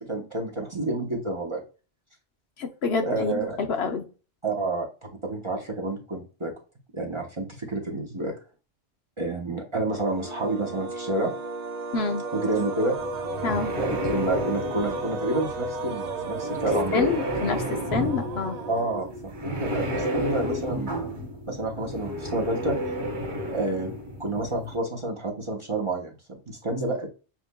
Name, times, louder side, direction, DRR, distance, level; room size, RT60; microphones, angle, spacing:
voice 1, 0.1-1.6 3.0-3.6 4.4-6.5 6.9-8.4 9.2-11.3 12.3-13.0 13.8-17.3 18.7-20.9 21.5-22.8 23.5-23.9 24.2-27.1, right 2 dB, 30° right, -1 dB, 0.9 m, -29 dB
voice 2, 2.6-4.1 11.9-12.2 13.4-13.7 16.9-18.6, left 5 dB, 70° left, 6 dB, 0.9 m, -27 dB
sound 1, 10.0-19.4, right 2 dB, 50° right, 0.5 m, -34 dB
sound 2, 13.0-24.8, equal, 70° right, 1.7 m, -32 dB
7.2 x 2.5 x 2.2 m, 0.34 s
omnidirectional pair, 1.2 m